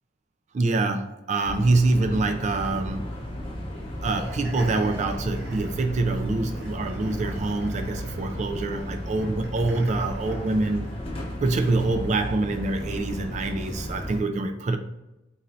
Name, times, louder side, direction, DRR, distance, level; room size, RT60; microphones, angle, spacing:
voice 1, 0.5-3.1 4.0-10.9 11.4-14.8, right 2 dB, 35° right, 0.3 m, -25 dB
sound 1, 1.4-14.2, left 1 dB, 30° left, 0.9 m, -34 dB
sound 2, 4.1-10.9, equal, 55° right, 0.9 m, -45 dB
3.9 x 2.7 x 3.0 m
head